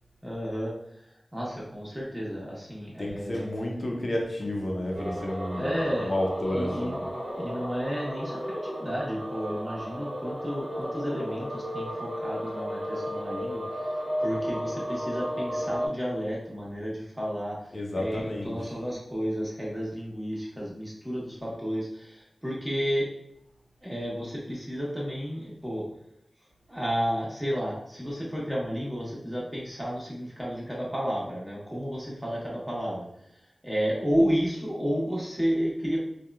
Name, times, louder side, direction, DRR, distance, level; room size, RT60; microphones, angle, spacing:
voice 1, 0.2-0.7 1.3-3.4 5.5-7.0 7.3-13.6 14.2-17.6 18.0-23.1 23.8-25.8 26.7-33.0 33.6-36.0, equal, 5° right, -5 dB, 1.0 m, -31 dB
voice 2, 3.0-7.0 17.7-18.6, left 1 dB, 50° left, 0 dB, 0.6 m, -31 dB
sound 1, 4.9-15.9, equal, 65° right, 1.0 m, -34 dB
2.8 x 2.1 x 2.3 m, 0.75 s
wide cardioid pair, 65°, 0 cm